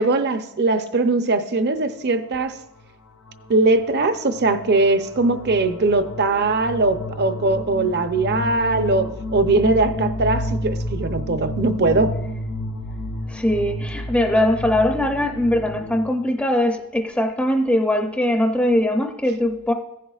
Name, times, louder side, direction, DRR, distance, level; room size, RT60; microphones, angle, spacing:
voice 1, 0.0-2.5 3.5-12.2, right 3 dB, 50° right, 9 dB, 0.6 m, -20 dB
sound 1, 2.8-3.0 3.3-16.1, left 1 dB, 70° left, 0.6 m, -31 dB
voice 2, 13.3-19.7, left 1 dB, 5° left, 3 dB, 0.5 m, -21 dB
15.5 x 10.0 x 2.4 m, 0.87 s
head